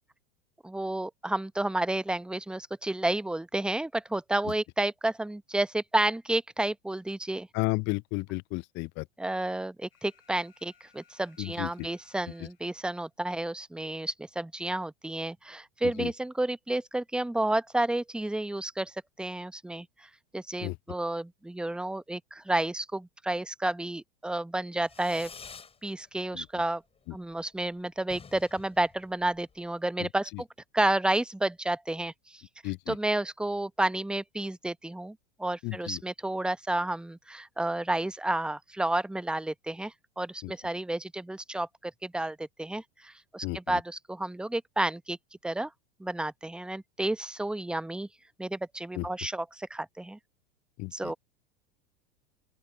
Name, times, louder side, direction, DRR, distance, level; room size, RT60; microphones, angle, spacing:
voice 1, 0.6-7.5 9.2-25.3 25.8-26.8 27.1-30.5 30.7-32.4 32.9-45.2 45.4-45.7 46.0-48.1 48.4-50.2 50.9-51.1, right 1 dB, 5° right, 0.9 m, -31 dB
voice 2, 7.5-9.1 11.4-11.9 16.0-16.1 20.6-20.8 26.3-26.5 30.0-30.1 30.3-30.4 32.6-33.0 35.6-36.0 40.4-40.5 43.4-43.8 48.9-49.1 50.8-51.1, left 26 dB, 40° left, 0.5 m, -33 dB
Alarm, 9.9-12.9, left 7 dB, 85° left, 6.5 m, -63 dB
Fireworks, 24.8-25.8 26.1-26.7 27.0-27.1 27.3-27.4 27.7-27.8 28.0-29.7, left 5 dB, 20° left, 7.3 m, -49 dB
open air
hypercardioid pair, 90°, 29 cm